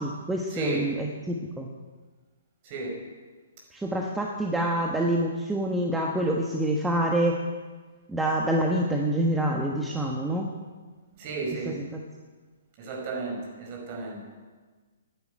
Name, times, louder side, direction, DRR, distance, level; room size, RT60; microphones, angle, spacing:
voice 1, 0.0-1.7 3.7-7.4 8.1-10.5 11.7-12.0, right 1 dB, 5° right, 0 dB, 1.2 m, -27 dB
voice 2, 0.5-0.8 2.7-2.9 11.2-11.7 12.8-14.2, right 3 dB, 40° right, 0 dB, 5.4 m, -33 dB
10.5 x 10.5 x 9.1 m, 1.4 s
hypercardioid pair, 130°, 0 cm